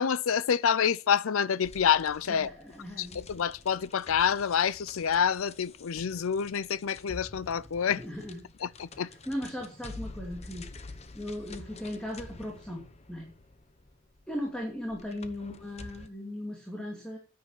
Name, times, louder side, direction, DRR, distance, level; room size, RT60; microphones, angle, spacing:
voice 1, 0.0-2.5 3.0-8.0 8.6-9.1, left 7 dB, 80° left, 0.5 m, -27 dB
sound 1, 1.6-16.1, left 3 dB, 30° left, 0.9 m, -48 dB
voice 2, 2.3-3.2 7.8-10.7 11.1-12.8 13.1-13.3 14.3-17.2, left 1 dB, 5° left, 2.6 m, -38 dB
10.0 x 9.6 x 7.1 m
head